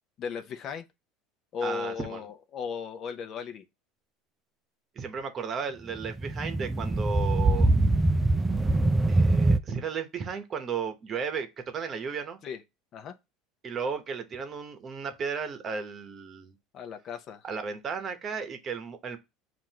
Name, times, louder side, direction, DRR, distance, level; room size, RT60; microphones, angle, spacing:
voice 1, 0.2-0.9 1.5-3.6 12.4-12.6 12.9-13.1 16.7-17.4, left 6 dB, 40° left, 0.6 m, -36 dB
voice 2, 1.6-2.2 4.9-7.7 9.1-12.4 13.6-16.5 17.4-19.2, right 6 dB, 30° right, 0.9 m, -34 dB
sound 1, 5.9-9.6, right 2 dB, 10° right, 0.4 m, -23 dB
7.3 x 2.6 x 2.8 m
supercardioid pair, 130°, 0 cm